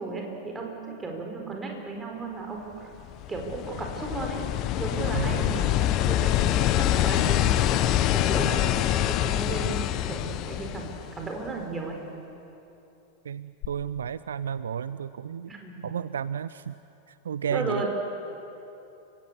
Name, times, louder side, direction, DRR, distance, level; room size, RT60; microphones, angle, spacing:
voice 1, 0.0-2.9 3.3-4.4 4.8-12.0 15.5-15.9 17.5-17.9, right 3 dB, 15° right, 1 dB, 4.7 m, -35 dB
sound 1, 3.0-11.5 13.6-13.7, left 13 dB, 40° left, 0.9 m, -25 dB
voice 2, 5.1-5.6 13.2-15.5 15.8-16.7 17.1-17.9, right 8 dB, 65° right, 16 dB, 0.4 m, -32 dB
30.0 x 17.0 x 8.2 m, 2.9 s
figure-of-eight pair, 90°, 0 cm